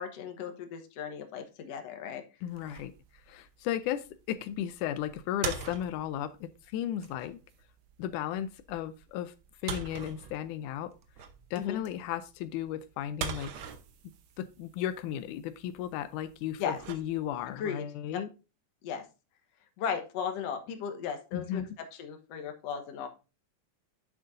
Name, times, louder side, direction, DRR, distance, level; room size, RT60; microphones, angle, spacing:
voice 1, 0.0-2.2 11.6-11.8 16.6-16.8 17.5-18.2 18.8-19.1 19.8-23.1, left 7 dB, 65° left, 5 dB, 2.2 m, -36 dB
voice 2, 2.4-2.9 3.3-7.4 8.0-9.3 9.6-10.9 11.5-13.5 14.4-18.3 21.3-21.8, left 11 dB, 90° left, 13 dB, 2.1 m, -35 dB
sound 1, 2.5-17.6, right 6 dB, 75° right, 1.1 m, -44 dB
9.9 x 7.4 x 2.6 m, 0.31 s
omnidirectional pair, 3.5 m